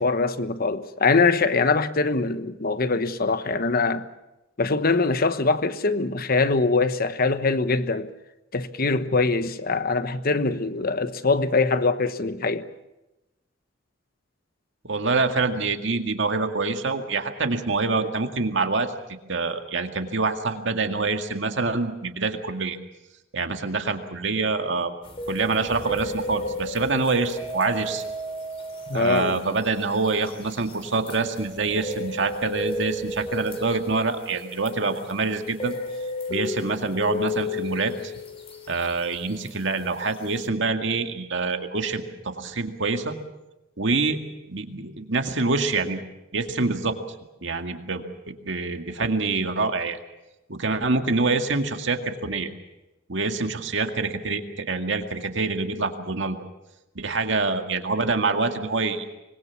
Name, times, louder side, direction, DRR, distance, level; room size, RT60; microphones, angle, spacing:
voice 1, 0.0-4.1 4.6-8.1 8.5-12.7 28.9-29.4, left 3 dB, 50° left, 1.1 m, -23 dB
voice 2, 14.8-18.9 19.3-22.8 23.3-24.9 25.3-28.0 28.9-35.8 36.3-38.1 38.7-43.2 43.8-44.2 44.5-46.0 46.3-47.0 47.4-50.0 50.5-52.5 53.1-56.4 57.0-59.0, right 3 dB, 65° right, 2.0 m, -26 dB
sound 1, 25.0-40.5, left 2 dB, 30° left, 3.2 m, -35 dB
25.5 x 21.0 x 7.1 m
head